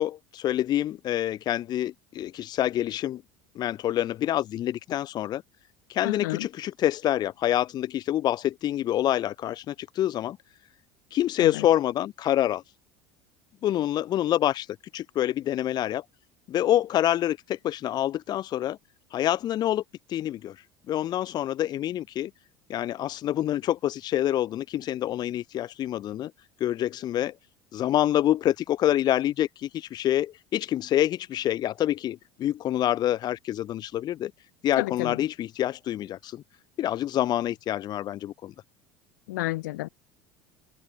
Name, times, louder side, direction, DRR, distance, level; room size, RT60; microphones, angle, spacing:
voice 1, 0.0-3.2 3.5-5.4 5.9-10.4 11.1-12.6 13.6-16.0 16.5-18.8 19.1-19.8 20.1-22.3 22.7-26.3 26.6-27.3 27.7-34.3 34.6-36.4 36.8-38.5, left 12 dB, 45° left, 0.9 m, -27 dB
voice 2, 6.0-6.5 11.4-11.7 34.8-35.2 39.3-39.9, left 19 dB, 75° left, 3.1 m, -30 dB
open air
hypercardioid pair, 80°, 10 cm